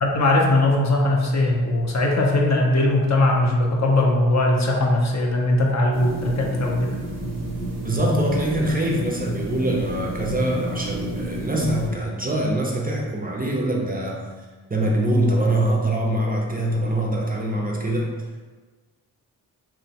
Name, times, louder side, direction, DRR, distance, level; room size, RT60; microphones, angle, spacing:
voice 1, 0.0-6.9, left 1 dB, 45° left, 0 dB, 0.5 m, -20 dB
sound 1, 5.9-11.9, equal, 75° right, 0.7 m, -30 dB
voice 2, 7.8-14.2 14.7-18.1, right 1 dB, 20° right, -1 dB, 0.5 m, -23 dB
2.8 x 2.1 x 2.7 m, 1.3 s
cardioid pair, 45°, 40 cm